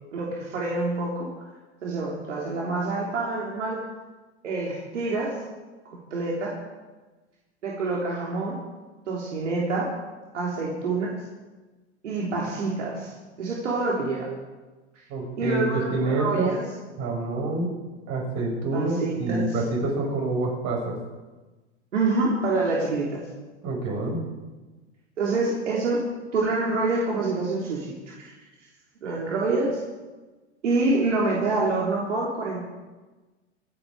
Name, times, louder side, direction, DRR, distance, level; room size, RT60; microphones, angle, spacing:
voice 1, 0.1-1.3 1.8-3.8 4.4-5.4 6.1-6.5 7.6-8.6 9.1-9.9 10.3-11.1 12.0-14.3 15.4-16.6 18.7-19.6 21.9-23.2 25.2-26.1 26.3-28.3 29.0-29.8 30.6-32.6, right 3 dB, 85° right, -3 dB, 3.5 m, -26 dB
voice 2, 15.1-16.6 17.0-17.7 18.1-20.9 23.6-24.2, right 2 dB, 50° right, 0 dB, 6.5 m, -27 dB
26.0 x 9.8 x 4.8 m, 1.2 s
hypercardioid pair, 100°, 35 cm